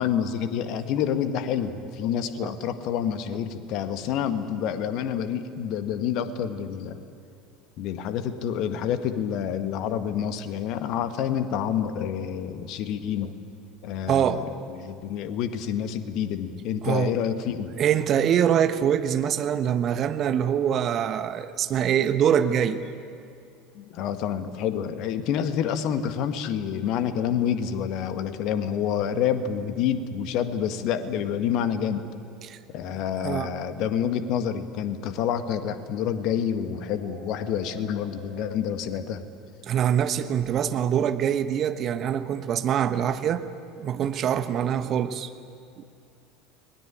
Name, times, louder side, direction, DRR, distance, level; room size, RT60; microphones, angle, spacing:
voice 1, 0.0-7.0 7.8-13.3 13.8-14.5 14.8-17.7 23.7-32.0 32.7-39.2, left 8 dB, 50° left, 10 dB, 1.7 m, -28 dB
voice 2, 14.1-14.4 16.8-17.1 17.8-22.8 32.4-32.6 32.9-33.5 39.7-43.4 43.8-45.3 45.8-45.9, right 9 dB, 40° right, 10 dB, 1.4 m, -24 dB
sound 1, 35.3-39.4, right 2 dB, 80° right, 6.8 m, -49 dB
29.5 x 21.0 x 8.8 m, 2.5 s
figure-of-eight pair, 70°, 0 cm